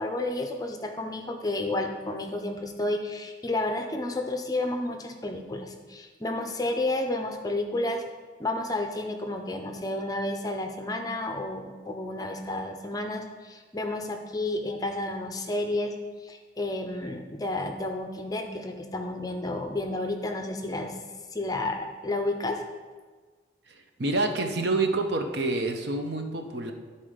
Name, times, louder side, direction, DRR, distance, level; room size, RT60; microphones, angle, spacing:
voice 1, 0.0-8.0 8.4-15.9 16.2-21.0 21.3-22.6, left 2 dB, 20° left, 5 dB, 0.5 m, -31 dB
voice 2, 23.7-26.7, right 2 dB, 55° right, 5 dB, 0.7 m, -28 dB
10.5 x 4.3 x 5.0 m, 1.4 s
head